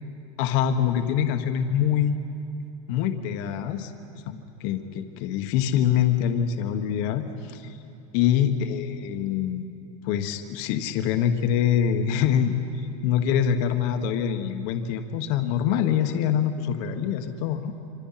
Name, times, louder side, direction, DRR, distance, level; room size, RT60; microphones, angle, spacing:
voice 1, 0.4-2.2 2.9-3.9 4.3-7.8 8.1-9.7 10.0-12.6 13.0-17.7, left 9 dB, 50° left, 6 dB, 1.4 m, -24 dB
26.5 x 25.5 x 5.9 m, 2.7 s
supercardioid pair, 160°, 18 cm